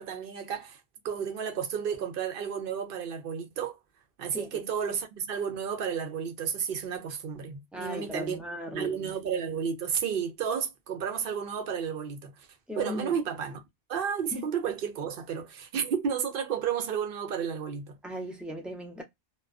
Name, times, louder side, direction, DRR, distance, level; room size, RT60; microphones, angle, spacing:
voice 1, 0.0-3.8 4.2-8.4 8.7-12.5 12.8-13.6 13.9-18.0, right 7 dB, 60° right, 0.7 m, -32 dB
voice 2, 4.3-4.7 7.3-7.4 7.7-9.1 12.7-13.1 14.3-14.4 18.0-19.0, left 1 dB, ahead, 0.5 m, -38 dB
2.4 x 2.3 x 2.3 m
omnidirectional pair, 1.1 m